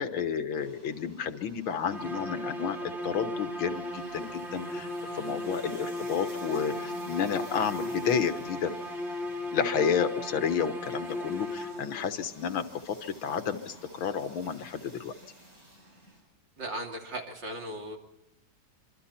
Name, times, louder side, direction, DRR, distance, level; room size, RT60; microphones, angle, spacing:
voice 1, 0.0-8.7 9.5-15.1, left 7 dB, 85° left, 8 dB, 2.1 m, -31 dB
sound 1, 0.6-16.2, right 1 dB, 45° right, 8.0 m, -52 dB
sound 2, 1.9-12.1, left 1 dB, ahead, 3.8 m, -36 dB
voice 2, 16.6-18.0, right 1 dB, 65° right, 1 dB, 3.6 m, -37 dB
25.5 x 25.5 x 4.3 m, 0.81 s
omnidirectional pair, 2.2 m